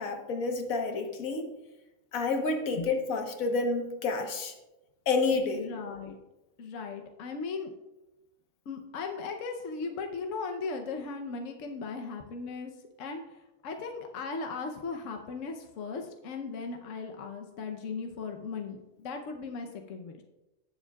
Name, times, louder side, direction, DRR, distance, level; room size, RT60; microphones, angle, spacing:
voice 1, 0.0-1.5 2.1-4.5 5.1-5.7, left 3 dB, 85° left, 5 dB, 1.5 m, -29 dB
voice 2, 5.5-6.2 6.6-7.7 8.7-20.2, left 4 dB, 70° left, 4 dB, 1.1 m, -37 dB
18.0 x 7.2 x 2.3 m, 1.0 s
omnidirectional pair, 1.4 m